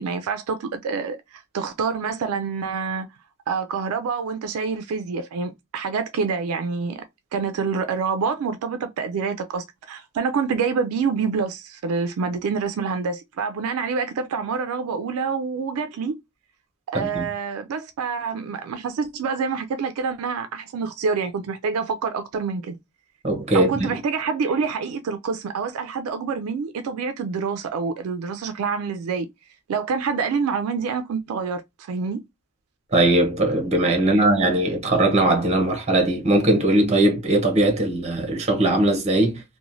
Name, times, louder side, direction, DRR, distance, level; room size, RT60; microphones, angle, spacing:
voice 1, 0.0-3.1 3.5-7.0 7.3-16.2 16.9-22.8 23.5-29.3 29.7-32.2 34.1-34.2, right 5 dB, 80° right, 0.3 m, -27 dB
voice 2, 16.9-17.2 23.2-23.9 32.9-39.4, right 1 dB, 30° right, 0.8 m, -20 dB
3.0 x 2.1 x 2.5 m
head